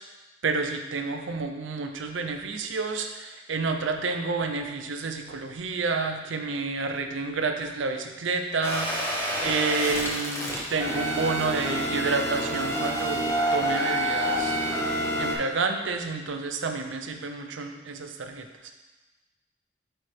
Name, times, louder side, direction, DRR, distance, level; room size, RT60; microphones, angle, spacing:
voice 1, 0.4-14.6 15.2-18.5, right 4 dB, 80° right, 5 dB, 0.6 m, -29 dB
sound 1, 8.6-15.3, equal, 15° left, 1.0 m, -28 dB
8.8 x 4.2 x 3.3 m, 1.2 s
head